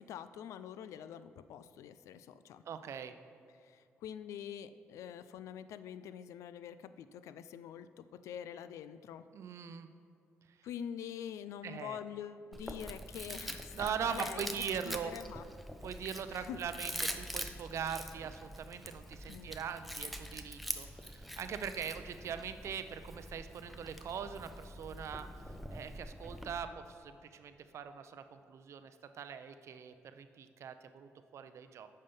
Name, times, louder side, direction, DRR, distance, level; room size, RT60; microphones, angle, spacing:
voice 1, 0.0-2.6 3.6-9.3 10.6-15.5 16.3-16.6 19.3-19.5, left 9 dB, 90° left, 13 dB, 0.3 m, -45 dB
voice 2, 2.7-3.1 9.3-9.9 11.6-12.0 13.7-15.1 15.8-25.3 25.7-31.9, right 7 dB, 70° right, 10 dB, 0.5 m, -41 dB
Chewing mastication, 12.5-26.6, equal, ahead, 0.6 m, -44 dB
8.8 x 5.5 x 5.4 m, 2.5 s
cardioid pair, 75°, 5 cm